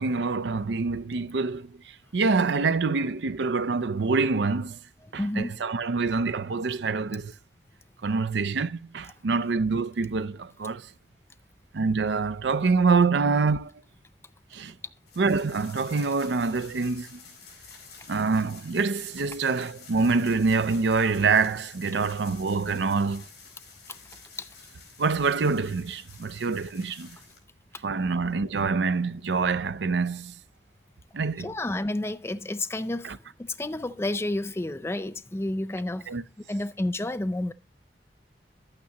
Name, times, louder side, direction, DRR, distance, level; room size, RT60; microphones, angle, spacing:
voice 1, 0.0-1.8 2.1-4.8 5.1-7.3 8.0-10.9 11.7-13.7 14.5-14.7 15.2-17.2 18.1-23.3 25.0-27.2 27.8-30.3 31.1-31.5 33.0-33.2 36.1-36.2, right 4 dB, 80° right, 0.5 m, -26 dB
voice 2, 5.2-5.6 23.9-24.0 24.4-24.5 31.4-33.1 33.4-36.1 36.5-37.5, left 1 dB, 15° left, 0.4 m, -30 dB
sound 1, 15.1-27.4, left 5 dB, 70° left, 4.4 m, -50 dB
11.5 x 8.9 x 2.9 m
head